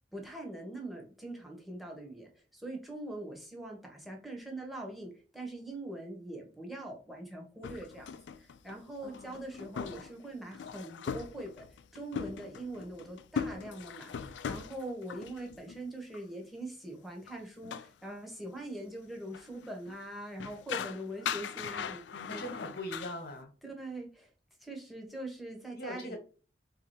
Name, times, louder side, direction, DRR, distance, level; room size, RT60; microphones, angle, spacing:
voice 1, 0.1-11.6 11.9-22.0 22.3-22.4 23.6-24.3 24.6-26.2, right 1 dB, ahead, 0 dB, 1.1 m, -43 dB
sound 1, 7.6-15.8 16.1-16.2 17.3-17.4 17.6-17.9 18.6-18.7 19.3-20.0 20.4-23.2, left 7 dB, 85° left, 0.4 m, -40 dB
voice 2, 9.0-9.4 22.1-23.5 25.7-26.2, left 1 dB, 60° left, 5 dB, 1.3 m, -41 dB
3.5 x 2.8 x 4.7 m, 0.37 s
head